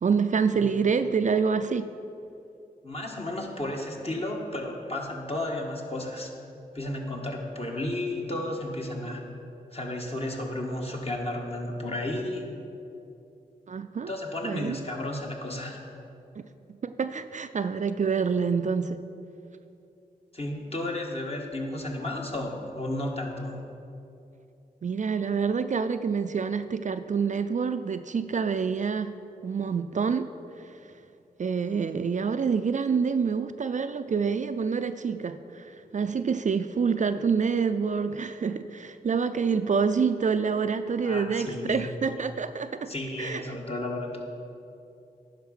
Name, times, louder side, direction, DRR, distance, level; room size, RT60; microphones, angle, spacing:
voice 1, 0.0-1.9 13.7-14.1 14.4-14.8 16.4-16.5 16.8-19.0 24.8-29.1 29.4-30.3 30.6-30.8 31.4-43.6, right 5 dB, 50° right, 10 dB, 0.4 m, -27 dB
voice 2, 2.8-6.3 6.7-9.2 9.7-12.5 14.0-15.8 20.3-23.6 41.0-41.8 42.9-44.2, left 1 dB, 35° left, 0 dB, 1.6 m, -33 dB
10.5 x 5.3 x 5.7 m, 2.7 s
cardioid pair, 40°, 17 cm